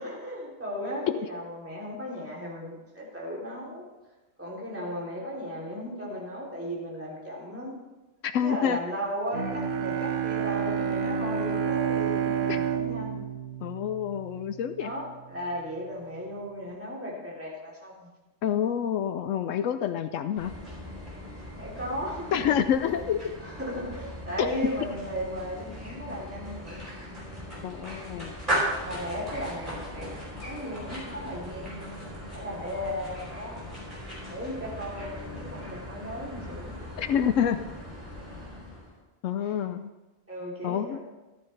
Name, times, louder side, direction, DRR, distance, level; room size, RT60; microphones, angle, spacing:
voice 1, 0.0-3.8 4.4-7.8 8.4-13.2 14.8-18.1 21.6-23.0 23.4-26.8 28.8-30.1 30.4-33.6 34.3-36.7 39.4-39.5 40.3-41.0, equal, 10° right, -5 dB, 2.9 m, -36 dB
voice 2, 8.2-8.8 12.5-12.6 13.6-14.9 18.4-20.5 22.3-23.4 24.4-24.5 27.6-28.3 37.0-37.6 39.2-39.9 40.6-41.0, left 9 dB, 80° left, 10 dB, 1.0 m, -27 dB
Bowed string instrument, 9.3-14.6, right 7 dB, 70° right, 1.3 m, -29 dB
sound 1, 20.4-39.0, equal, 30° right, 5.0 m, -38 dB
14.0 x 13.5 x 3.3 m, 1.1 s
omnidirectional pair, 1.3 m